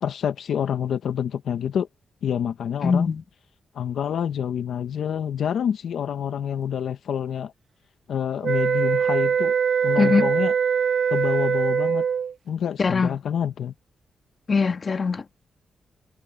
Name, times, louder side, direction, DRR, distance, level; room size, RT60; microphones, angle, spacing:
voice 1, 0.0-1.9 2.2-3.1 3.7-7.5 8.1-9.5 9.8-10.5 11.1-12.0 12.5-13.7, left 8 dB, 80° left, 1.1 m, -27 dB
voice 2, 2.8-3.2 10.0-10.3 12.8-13.2 14.5-15.2, left 5 dB, 40° left, 1.9 m, -21 dB
sound 1, 8.4-12.3, right 7 dB, 60° right, 1.0 m, -22 dB
wide cardioid pair, 125°, 0 cm